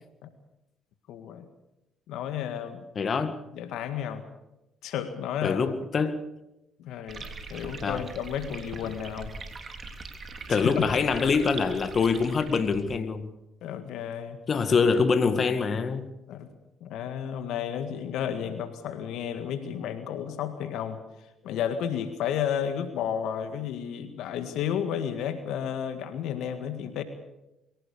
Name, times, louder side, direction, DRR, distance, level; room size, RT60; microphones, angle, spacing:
voice 1, 1.1-1.5 2.1-2.9 3.5-4.2 4.8-5.6 6.8-9.3 10.5-10.9 13.6-14.4 16.3-16.5 16.8-21.0 21.4-27.0, left 9 dB, 75° left, 9 dB, 1.8 m, -32 dB
voice 2, 3.0-3.4 5.4-6.3 7.8-8.0 10.5-13.3 14.5-16.1, left 5 dB, 50° left, 10 dB, 1.9 m, -25 dB
sound 1, 7.1-13.0, right 3 dB, 45° right, 3.5 m, -41 dB
23.0 x 17.0 x 7.0 m, 0.91 s
supercardioid pair, 60°, 0 cm